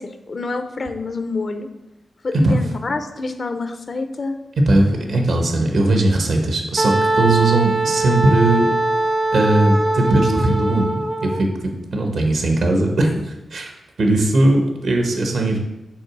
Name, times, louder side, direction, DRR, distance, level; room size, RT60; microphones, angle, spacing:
voice 1, 0.0-1.7 2.2-4.4, left 3 dB, 50° left, 8 dB, 0.7 m, -27 dB
voice 2, 4.7-8.7 9.3-13.7 14.0-15.6, right 2 dB, 75° right, 2 dB, 1.2 m, -18 dB
Wind instrument woodwind instrument, 6.8-11.4, right 2 dB, 30° right, 0.5 m, -21 dB
6.3 x 3.9 x 6.2 m, 0.97 s
cardioid pair, 75°, 0 cm